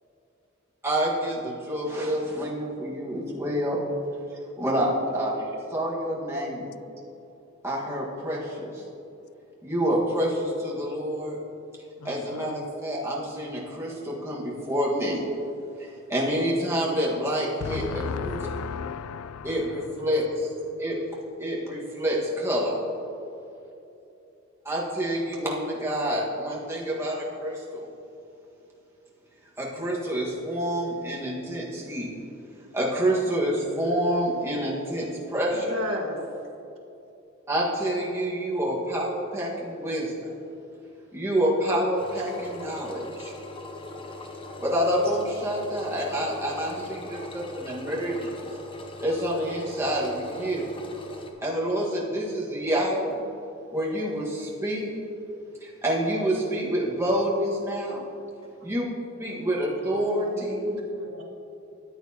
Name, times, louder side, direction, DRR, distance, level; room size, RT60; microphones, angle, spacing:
voice 1, 0.8-3.8 4.6-6.8 7.6-8.8 9.6-11.4 12.0-15.2 15.8-18.4 19.4-20.5 20.8-21.0 21.4-22.8 24.6-27.9 29.6-32.1 32.7-35.7 37.5-40.1 41.1-43.3 44.6-48.3 49.0-50.7 51.4-53.2 53.7-54.9 55.6-58.1 58.6-58.8 59.2-60.6, equal, 15° right, -5 dB, 1.6 m, -27 dB
voice 2, 12.0-12.7 17.6-19.9, left 6 dB, 80° left, 14 dB, 0.4 m, -35 dB
voice 3, 20.7-21.0 35.5-36.2 46.1-46.2 46.7-46.8 60.0-61.2, left 1 dB, 85° right, -1 dB, 1.5 m, -35 dB
Engine, 41.9-51.3, left 2 dB, 25° left, 0.8 m, -40 dB
13.5 x 8.8 x 2.9 m, 2.8 s
head